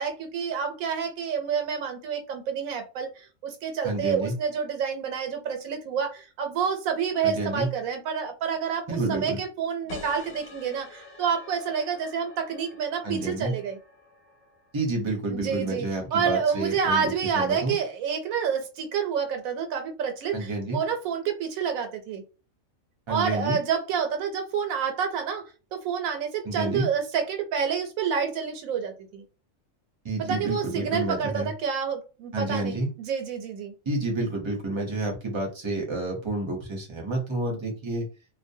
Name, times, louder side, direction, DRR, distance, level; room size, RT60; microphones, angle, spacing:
voice 1, 0.0-13.8 15.3-22.2 23.1-29.2 30.2-33.7, right 6 dB, 90° right, 1.0 m, -28 dB
voice 2, 3.8-4.3 7.2-7.7 8.9-9.4 13.0-13.5 14.7-17.7 20.3-20.8 23.1-23.6 26.5-26.9 30.0-31.5 32.3-32.9 33.9-38.1, right 2 dB, 35° right, 0.4 m, -29 dB
sound 1, 9.9-15.1, left 4 dB, 75° left, 1.0 m, -47 dB
2.4 x 2.0 x 2.6 m
omnidirectional pair, 1.4 m